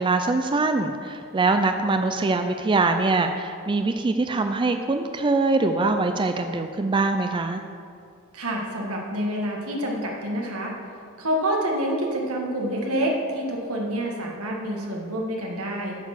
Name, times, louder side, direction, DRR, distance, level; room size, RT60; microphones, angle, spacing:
voice 1, 0.0-7.6, right 3 dB, 20° right, 7 dB, 0.4 m, -23 dB
voice 2, 8.3-10.7 11.2-16.0, right 1 dB, 90° right, -1 dB, 1.8 m, -27 dB
9.5 x 6.6 x 6.6 m, 2.4 s
head